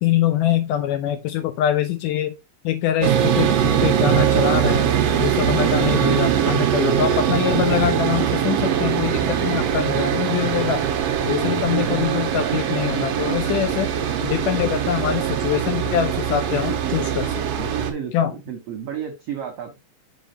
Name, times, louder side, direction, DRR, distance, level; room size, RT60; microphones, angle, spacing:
voice 1, 0.0-2.3 2.6-10.8 11.2-13.9 14.2-17.7 18.1-18.3, left 11 dB, 80° left, 2.0 m, -24 dB
sound 1, 3.0-17.9, right 9 dB, 90° right, 1.4 m, -21 dB
voice 2, 17.8-19.8, right 8 dB, 70° right, 1.5 m, -32 dB
6.2 x 5.4 x 2.8 m
omnidirectional pair, 4.2 m